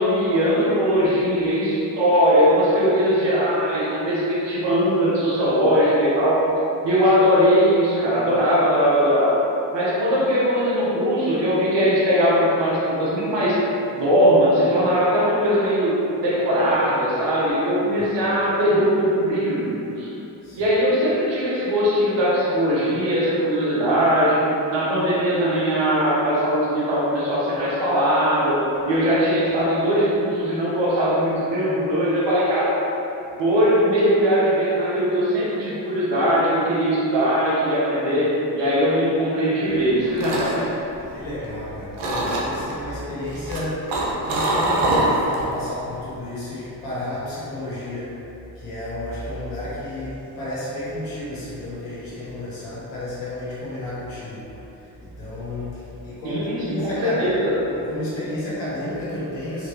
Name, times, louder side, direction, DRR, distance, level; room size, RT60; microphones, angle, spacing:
voice 1, 0.0-6.4 6.8-9.4 9.7-13.6 13.9-20.1 20.5-32.8 33.4-40.7 56.2-57.5, equal, 60° right, -6 dB, 1.2 m, -20 dB
sound 1, 39.8-41.6 42.0-42.7 43.3-45.5 45.8-46.2, right 2 dB, 80° right, 0.7 m, -24 dB
voice 2, 41.1-48.1 48.5-57.3 57.7-59.7, left 1 dB, 90° left, -9 dB, 1.0 m, -31 dB
3.5 x 3.0 x 3.1 m, 2.9 s
hypercardioid pair, 40°, 50 cm